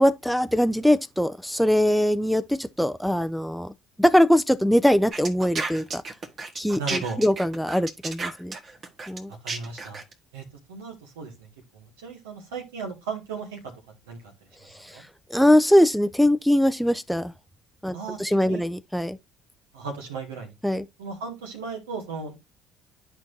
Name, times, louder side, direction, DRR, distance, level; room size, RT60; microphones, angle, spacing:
voice 1, 0.0-3.7 4.0-6.0 6.6-8.5 9.1-9.3 14.8-15.0 15.3-17.3 17.8-19.2 20.6-20.8, equal, ahead, 0.4 m, -22 dB
sound 1, 5.1-10.1, right 3 dB, 45° right, 1.5 m, -32 dB
voice 2, 6.8-7.2 9.3-10.0 10.3-11.5 11.7-13.6 14.1-14.2 14.6-15.0 17.9-18.7 19.7-20.5 21.0-22.4, right 5 dB, 85° right, 2.0 m, -36 dB
11.5 x 4.5 x 2.7 m
hypercardioid pair, 60°, 0 cm